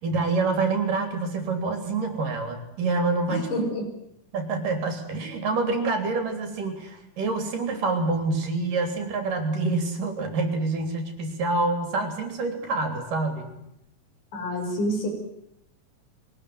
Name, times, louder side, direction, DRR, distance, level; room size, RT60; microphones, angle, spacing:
voice 1, 0.0-3.5 4.3-13.5, right 3 dB, 75° right, 7 dB, 4.9 m, -27 dB
voice 2, 3.3-3.9 14.3-15.1, equal, 70° left, 3 dB, 6.8 m, -28 dB
22.5 x 19.5 x 9.5 m, 0.80 s
omnidirectional pair, 3.8 m